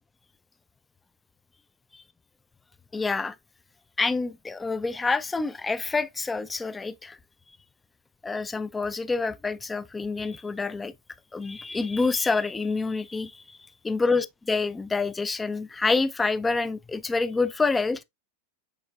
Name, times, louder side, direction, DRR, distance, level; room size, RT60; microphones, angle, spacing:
voice 1, 2.9-3.4 4.0-7.2 8.2-10.9 11.3-13.6 13.8-18.0, left 3 dB, 10° left, 0.3 m, -27 dB
5.3 x 3.6 x 2.3 m
figure-of-eight pair, 90°, 0 cm